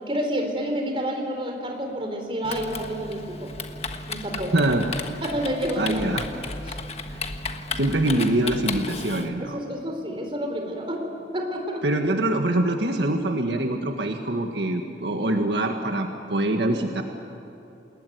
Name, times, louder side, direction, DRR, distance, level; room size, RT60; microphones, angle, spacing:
voice 1, 0.0-3.5 4.1-4.8 5.2-6.0 6.7-6.8 9.4-11.8, equal, 30° right, 3 dB, 4.1 m, -29 dB
Typing, 2.4-9.3, left 3 dB, 35° left, 1.4 m, -34 dB
voice 2, 4.5-4.9 5.8-6.3 7.1-7.2 7.8-9.6 11.8-17.0, right 1 dB, 75° right, 4 dB, 1.7 m, -24 dB
28.0 x 20.5 x 9.5 m, 2.8 s
head